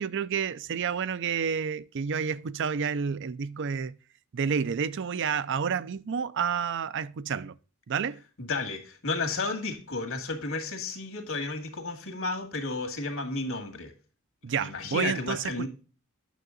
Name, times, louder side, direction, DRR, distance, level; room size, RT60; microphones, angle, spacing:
voice 1, 0.0-3.9 4.3-7.5 7.9-8.2 14.4-15.7, right 6 dB, 60° right, 0.5 m, -30 dB
voice 2, 8.4-13.9 14.6-15.7, left 3 dB, 65° left, 2.1 m, -32 dB
9.3 x 6.6 x 3.9 m
head